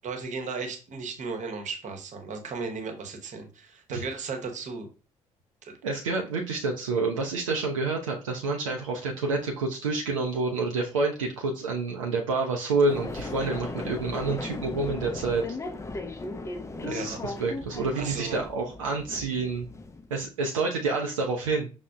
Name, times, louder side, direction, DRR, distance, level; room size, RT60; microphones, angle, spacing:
voice 1, 0.0-4.9 5.6-5.8 16.9-17.2 17.9-18.4, right 4 dB, 50° right, 4 dB, 0.9 m, -35 dB
voice 2, 5.8-15.5 16.8-19.7 20.1-21.7, right 3 dB, 85° right, 0 dB, 0.4 m, -28 dB
sound 1, 12.9-20.3, left 3 dB, 15° left, 0.4 m, -37 dB
5.7 x 2.0 x 2.3 m, 0.33 s
figure-of-eight pair, 45°, 17 cm